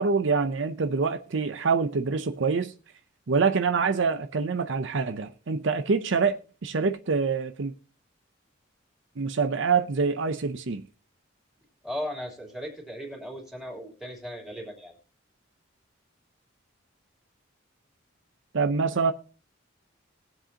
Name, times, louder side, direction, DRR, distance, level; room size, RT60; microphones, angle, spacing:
voice 1, 0.0-2.7 3.3-6.4 6.6-7.7 9.2-10.8 18.5-19.1, right 5 dB, 60° right, 0.6 m, -25 dB
voice 2, 11.8-14.9, equal, ahead, 3.1 m, -37 dB
20.5 x 7.6 x 2.8 m
head